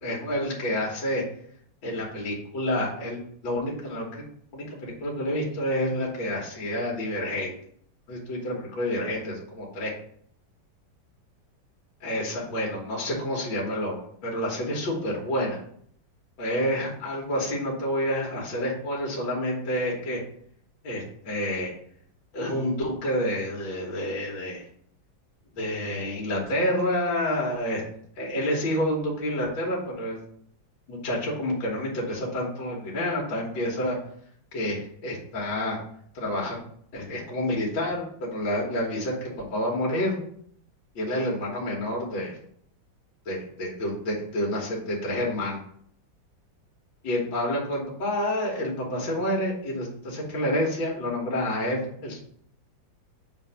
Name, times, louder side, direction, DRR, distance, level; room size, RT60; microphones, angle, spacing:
voice 1, 0.0-1.2 1.8-4.2 4.5-7.5 8.1-9.9 12.0-15.6 16.4-20.2 20.8-21.7 22.3-24.7 25.6-27.8 28.2-30.2 30.9-34.0 34.5-34.8 35.0-35.8 36.1-36.6 36.9-40.2 41.0-42.4 43.3-45.6 47.0-52.2, left 1 dB, 70° left, -2 dB, 2.0 m, -28 dB
6.7 x 2.6 x 5.5 m, 0.66 s
omnidirectional pair, 2.1 m